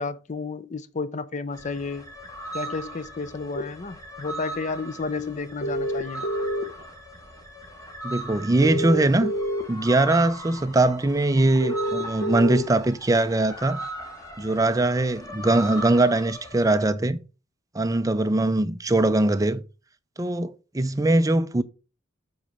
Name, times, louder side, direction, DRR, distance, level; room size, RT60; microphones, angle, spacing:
voice 1, 0.0-2.1 2.5-6.3, left 4 dB, 35° left, 0.5 m, -32 dB
sound 1, 1.5-16.8, right 1 dB, 15° left, 1.7 m, -39 dB
sound 2, 3.5-3.6 5.6-6.8 8.6-9.6 11.6-12.6, equal, 90° left, 1.0 m, -27 dB
voice 2, 8.0-9.3 9.7-13.8 14.4-17.2 17.7-19.6 20.2-21.6, right 2 dB, 15° right, 0.5 m, -21 dB
8.0 x 4.2 x 4.9 m
head